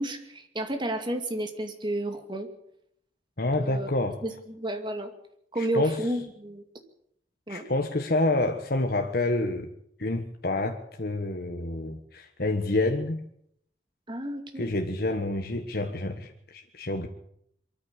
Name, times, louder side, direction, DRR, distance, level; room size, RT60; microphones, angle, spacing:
voice 1, 0.0-2.5 3.6-3.9 4.2-5.1 5.5-6.6 7.5-7.7 14.1-14.7, right 1 dB, 25° right, 6 dB, 2.4 m, -31 dB
voice 2, 3.4-4.2 5.6-6.0 7.5-9.7 10.0-13.2 14.6-17.1, left 2 dB, 60° left, 4 dB, 1.4 m, -28 dB
23.5 x 14.0 x 8.3 m, 0.71 s
head